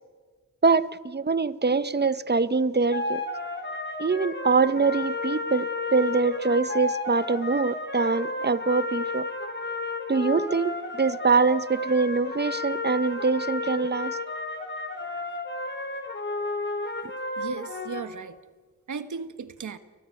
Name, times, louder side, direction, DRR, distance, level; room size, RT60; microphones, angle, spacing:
voice 1, 0.6-3.2 4.0-9.3 10.1-14.2, right 4 dB, 35° right, 1.2 m, -24 dB
sound 1, 2.9-18.0, left 2 dB, 35° left, 5.3 m, -32 dB
voice 2, 17.4-18.4 18.9-19.8, right 6 dB, 70° right, 1.6 m, -36 dB
30.0 x 23.0 x 8.7 m
cardioid pair, 65°, 30 cm